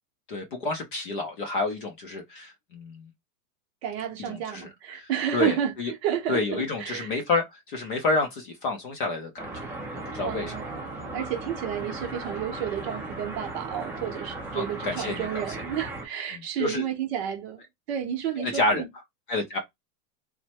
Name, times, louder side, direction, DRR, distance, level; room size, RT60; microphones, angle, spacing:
voice 1, 0.3-3.1 4.3-5.9 6.3-9.7 10.1-10.6 14.5-15.5 16.3-16.9 18.4-18.8 19.3-19.6, left 3 dB, 35° left, 0.4 m, -29 dB
voice 2, 3.8-5.7 6.0-7.1 10.2-18.9, right 10 dB, 40° right, 0.7 m, -31 dB
sound 1, 9.4-16.1, right 2 dB, 5° right, 0.6 m, -37 dB
3.0 x 2.1 x 2.8 m
supercardioid pair, 160°, 48 cm